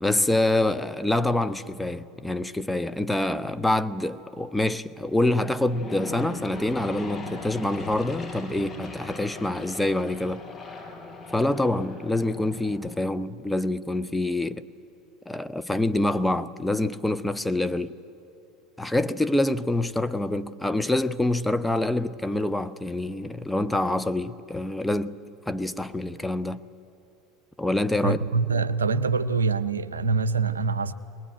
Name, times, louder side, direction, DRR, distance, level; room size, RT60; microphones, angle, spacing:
voice 1, 0.0-10.4 11.3-14.6 15.3-17.9 18.8-26.6 27.6-28.2, left 1 dB, 5° left, 0.8 m, -26 dB
Aircraft / Engine, 5.1-13.0, left 3 dB, 30° left, 5.3 m, -39 dB
voice 2, 28.0-30.9, right 4 dB, 85° right, 0.6 m, -25 dB
21.5 x 20.5 x 9.1 m
hypercardioid pair, 75°, 0 cm